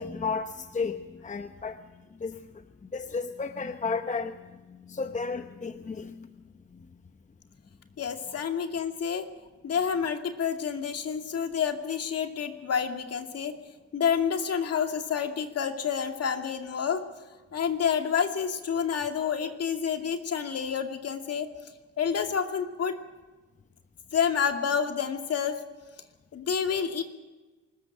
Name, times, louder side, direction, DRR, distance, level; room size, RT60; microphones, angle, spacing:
voice 1, 0.0-1.8 2.2-2.6 2.9-6.3, left 4 dB, 25° left, 9 dB, 0.9 m, -33 dB
voice 2, 8.0-9.3 9.6-13.5 13.9-17.0 17.5-21.5 22.0-23.0 24.1-25.6 26.3-27.0, left 7 dB, 55° left, 5 dB, 2.5 m, -29 dB
24.5 x 14.0 x 8.9 m, 1.2 s
cardioid pair, 90°, 30 cm